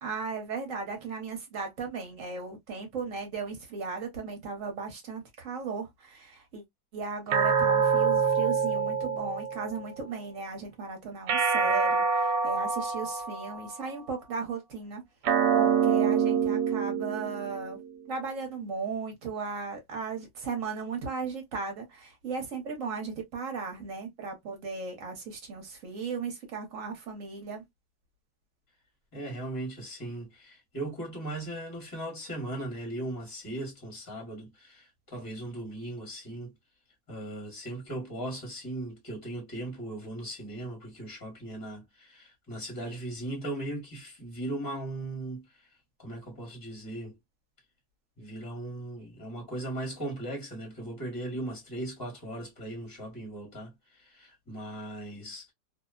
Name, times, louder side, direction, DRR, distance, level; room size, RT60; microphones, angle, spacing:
voice 1, 0.0-6.6 6.9-15.0 15.3-17.8 18.1-27.6, right 5 dB, 55° right, 1.1 m, -36 dB
sound 1, 7.3-9.9 11.3-13.8 15.2-17.9, right 6 dB, 75° right, 1.2 m, -26 dB
voice 2, 29.1-36.5 37.1-45.7 46.0-47.1 48.2-55.5, right 1 dB, 15° left, 0.7 m, -38 dB
2.9 x 2.0 x 2.3 m
omnidirectional pair, 1.9 m